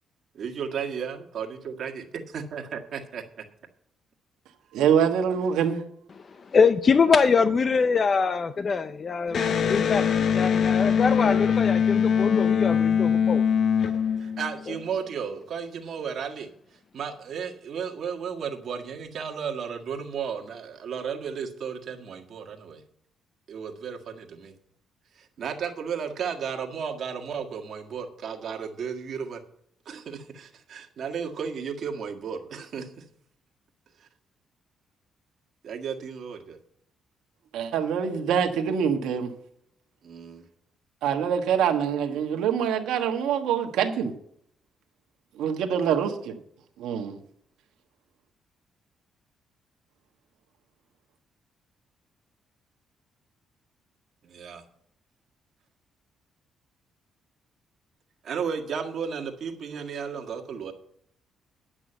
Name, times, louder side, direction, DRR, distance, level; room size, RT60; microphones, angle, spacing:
voice 1, 0.3-3.4 14.2-16.5 16.9-22.8 23.5-24.5 25.2-29.4 29.9-33.0 34.0-34.1 35.6-36.6 40.0-40.5 54.2-54.6 58.2-60.7, right 6 dB, 60° right, 1.7 m, -34 dB
voice 2, 4.7-5.8 37.5-39.3 41.0-44.1 45.4-46.4 46.8-47.2, right 8 dB, 85° right, 1.3 m, -25 dB
voice 3, 6.5-9.4 9.7-10.0 10.3-13.4, left 5 dB, 40° left, 0.5 m, -23 dB
Electric guitar, 9.3-14.8, left 7 dB, 60° left, 1.0 m, -22 dB
10.5 x 6.1 x 8.0 m
cardioid pair, 90°, 0 cm